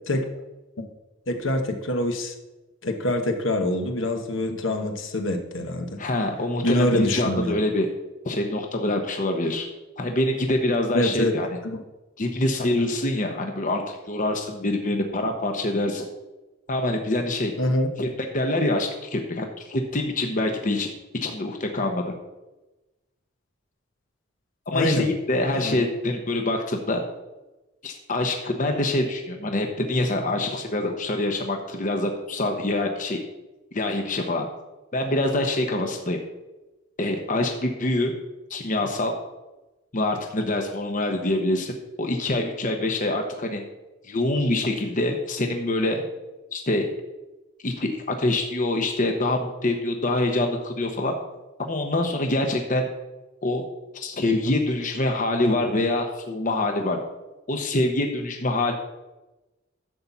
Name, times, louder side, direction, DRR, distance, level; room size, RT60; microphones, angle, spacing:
voice 1, 1.3-2.3 2.8-6.0 6.6-7.6 10.9-11.3 11.6-11.8 17.6-17.9 24.7-25.1 25.5-25.8, left 1 dB, 70° left, 4 dB, 1.1 m, -25 dB
voice 2, 6.0-7.9 8.2-9.7 10.0-11.5 12.2-16.1 16.7-17.5 18.0-18.1 18.3-20.9 21.2-22.1 24.7-27.0 27.8-33.2 33.7-34.5 34.9-36.2 37.0-38.1 38.5-39.1 39.9-43.6 44.0-46.0 46.5-46.9 47.6-51.2 51.7-52.9 53.4-53.6 53.9-57.0 57.5-58.7, left 2 dB, 40° left, 4 dB, 0.9 m, -25 dB
11.0 x 4.2 x 7.2 m, 1.1 s
head